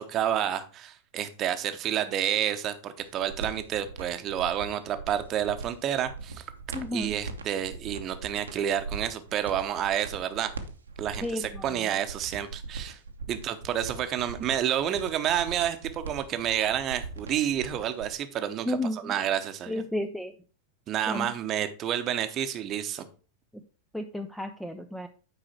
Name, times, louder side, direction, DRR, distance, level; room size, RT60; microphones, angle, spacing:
voice 1, 0.0-6.4 6.9-10.5 11.0-13.0 13.3-19.8 20.9-23.1, right 10 dB, 30° right, 10 dB, 0.9 m, -29 dB
sound 1, 3.0-18.1, right 4 dB, 75° right, 0.9 m, -41 dB
voice 2, 6.7-7.1 11.2-11.6 18.7-19.1 19.7-20.3 21.1-21.3 23.9-25.1, left 1 dB, 5° left, 7 dB, 0.5 m, -32 dB
8.7 x 4.8 x 4.4 m, 0.37 s
figure-of-eight pair, 90°, 0 cm